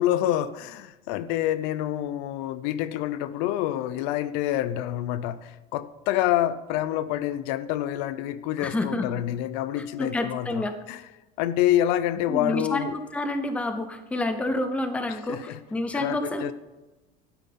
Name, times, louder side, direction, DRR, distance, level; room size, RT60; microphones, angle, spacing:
voice 1, 0.0-11.0 11.4-13.0 15.1-15.6 15.9-16.5, left 12 dB, 60° left, 15 dB, 0.5 m, -27 dB
voice 2, 8.6-9.1 9.8-10.7 12.3-16.5, left 1 dB, 5° left, 9 dB, 0.7 m, -29 dB
12.0 x 9.0 x 4.2 m, 1.1 s
cardioid pair, 165°, 21 cm